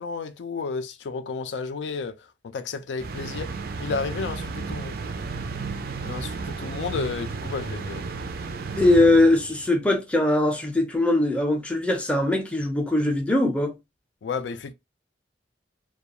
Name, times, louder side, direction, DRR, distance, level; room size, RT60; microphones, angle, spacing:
voice 1, 0.0-3.5 3.8-5.0 6.0-8.1 14.2-14.7, left 5 dB, 75° left, 0.4 m, -32 dB
sound 1, 3.0-9.7, right 4 dB, 55° right, 0.4 m, -33 dB
voice 2, 8.7-13.7, left 2 dB, 5° left, 0.5 m, -21 dB
2.3 x 2.2 x 2.8 m
head